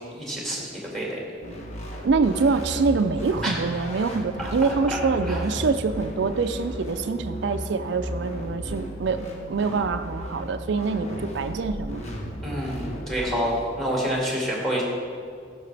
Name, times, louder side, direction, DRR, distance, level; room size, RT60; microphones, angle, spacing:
voice 1, 0.1-1.2 3.4-3.5 4.4-4.7 5.2-5.4 12.4-14.8, equal, ahead, -3 dB, 2.0 m, -28 dB
sound 1, 1.4-13.4, equal, 40° left, 1.3 m, -35 dB
voice 2, 2.0-9.2 9.5-12.0, right 4 dB, 65° right, 8 dB, 0.4 m, -25 dB
14.0 x 5.9 x 3.3 m, 2.2 s
head